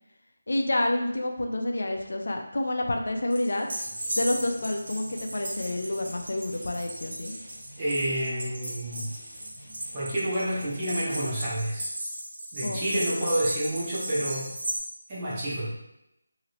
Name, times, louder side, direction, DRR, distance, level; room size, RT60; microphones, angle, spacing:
voice 1, 0.5-3.7 4.2-7.3 12.6-13.4, left 1 dB, 70° left, 3 dB, 0.5 m, -29 dB
sound 1, 3.3-14.8, right 1 dB, 50° right, 0.9 m, -36 dB
sound 2, 3.7-11.5, equal, 35° left, 0.7 m, -51 dB
voice 2, 7.8-9.1 9.9-11.9 12.5-14.5 15.1-15.7, right 1 dB, 20° right, -8 dB, 0.7 m, -29 dB
2.9 x 2.8 x 2.9 m, 0.86 s
figure-of-eight pair, 175°, 0 cm